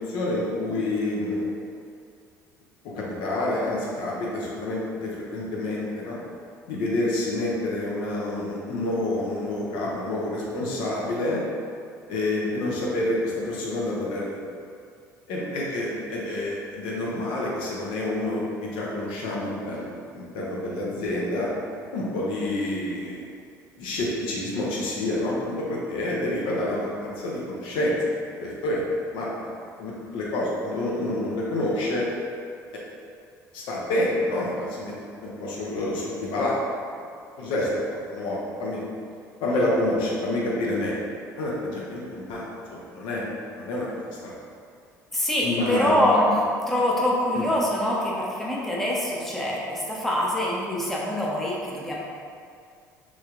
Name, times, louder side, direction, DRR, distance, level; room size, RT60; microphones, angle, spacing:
voice 1, 0.0-1.4 2.9-6.2 6.7-11.4 12.1-14.4 15.3-21.5 21.9-23.2 23.8-27.9 28.4-28.8 29.1-29.5 29.8-32.0 33.5-34.9 35.2-36.5 37.4-38.8 39.4-41.0 41.4-42.4 42.7-43.2 43.6-43.9 44.2-44.3 45.4-46.2 47.3-47.5, left 1 dB, 60° left, -5 dB, 0.6 m, -28 dB
voice 2, 45.1-46.4 46.7-52.0, equal, 5° left, -5 dB, 0.6 m, -24 dB
3.1 x 3.1 x 2.4 m, 2.3 s
figure-of-eight pair, 60°, 10 cm